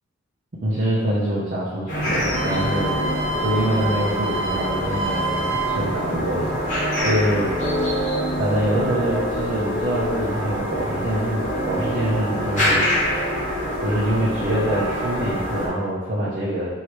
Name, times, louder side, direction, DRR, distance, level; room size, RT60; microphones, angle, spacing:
voice 1, 0.6-6.6 7.0-7.5 8.4-12.9 13.8-16.7, right 1 dB, 50° right, -8 dB, 0.7 m, -25 dB
sound 1, 1.9-15.7, equal, 40° left, 1.4 m, -25 dB
sound 2, 2.3-6.1 6.4-7.8 8.4-8.9, right 3 dB, 90° right, 0.9 m, -29 dB
4.7 x 2.8 x 3.1 m, 1.3 s
head